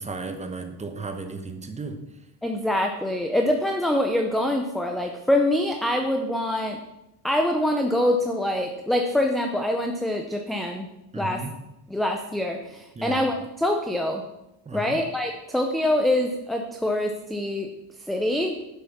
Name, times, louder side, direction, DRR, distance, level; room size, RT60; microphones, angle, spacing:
voice 1, 0.0-2.0 11.1-11.5 12.9-13.3 14.6-15.0, right 3 dB, 15° right, 7 dB, 1.0 m, -34 dB
voice 2, 2.4-6.8 7.2-10.9 11.1-11.4 11.9-14.2 14.7-17.7 18.1-18.6, left 1 dB, ahead, 3 dB, 0.6 m, -25 dB
10.5 x 7.9 x 5.9 m, 0.92 s
cardioid pair, 165°, 44 cm